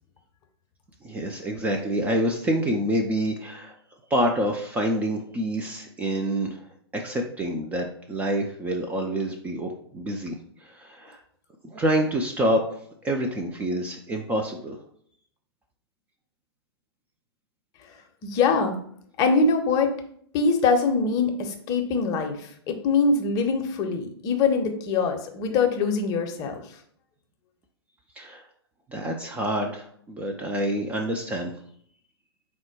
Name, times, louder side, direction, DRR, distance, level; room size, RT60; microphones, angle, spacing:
voice 1, 1.0-3.7 4.1-6.6 6.9-11.2 11.6-14.8 28.2-28.4 28.9-31.5, right 1 dB, 10° right, 2 dB, 0.4 m, -27 dB
voice 2, 17.8-18.8 19.2-19.9 20.3-26.8, left 4 dB, 30° left, 5 dB, 0.7 m, -23 dB
4.3 x 2.1 x 4.5 m, 0.62 s
figure-of-eight pair, 115°, 14 cm